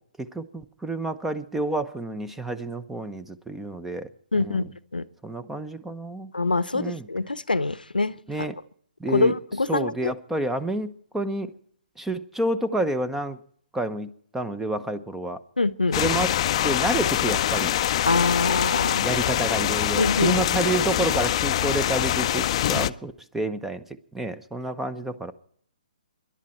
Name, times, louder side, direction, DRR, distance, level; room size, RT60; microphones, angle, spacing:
voice 1, 0.2-4.1 4.3-4.6 5.2-6.3 6.7-7.1 8.3-8.6 9.0-9.3 9.7-11.5 12.0-13.4 13.7-15.4 16.0-16.3 16.6-17.7 19.0-23.8 24.1-25.3, right 2 dB, 5° right, 12 dB, 0.9 m, -29 dB
voice 2, 4.3-5.0 6.3-8.1 9.1-10.1 15.6-16.0 18.1-19.0 20.0-20.4, left 3 dB, 85° left, 17 dB, 0.8 m, -24 dB
sound 1, 15.9-22.9, left 12 dB, 40° left, 0.6 m, -24 dB
26.0 x 11.5 x 4.4 m, 0.62 s
figure-of-eight pair, 135°, 5 cm